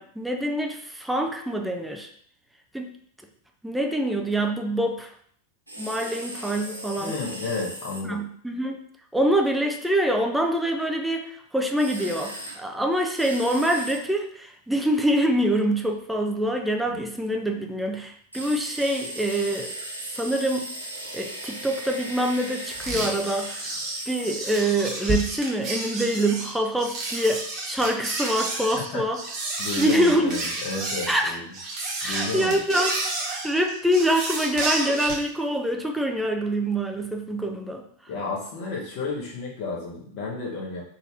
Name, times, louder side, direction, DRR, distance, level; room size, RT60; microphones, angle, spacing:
voice 1, 0.0-2.1 2.7-2.9 3.6-5.1 5.8-7.2 8.1-8.8 9.1-19.7 20.1-20.7 21.1-23.7 24.1-29.2 29.8-30.4 31.1-31.4 32.0-32.9 33.2-37.8, right 1 dB, 5° right, 3 dB, 0.5 m, -25 dB
sound 1, 5.7-8.0 11.8-12.6 13.2-14.0 18.3-24.6, right 1 dB, 85° right, 0.7 m, -37 dB
voice 2, 7.0-8.2 16.9-17.0 28.7-29.0 29.6-31.4 32.0-32.6 38.1-40.8, left 3 dB, 45° left, -2 dB, 1.2 m, -32 dB
sound 2, 22.7-35.3, right 2 dB, 35° right, 1.2 m, -31 dB
4.2 x 2.7 x 3.3 m, 0.62 s
figure-of-eight pair, 90°, 0 cm